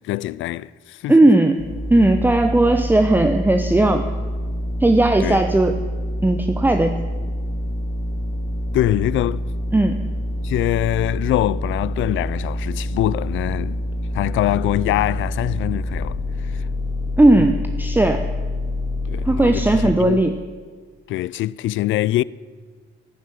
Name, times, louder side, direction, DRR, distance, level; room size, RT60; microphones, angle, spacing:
voice 1, 0.0-1.3 5.2-5.4 8.7-9.5 10.4-13.8 14.1-16.7 17.4-17.5 19.1-20.2 21.1-22.2, left 15 dB, 75° left, 0.4 m, -23 dB
voice 2, 1.1-4.1 4.8-5.7 6.2-7.0 9.7-10.0 17.2-18.3 19.3-20.4, right 2 dB, 10° right, 0.9 m, -16 dB
sound 1, 1.6-20.0, left 1 dB, 45° left, 3.5 m, -26 dB
12.5 x 11.5 x 9.3 m
cardioid pair, 90°, 20 cm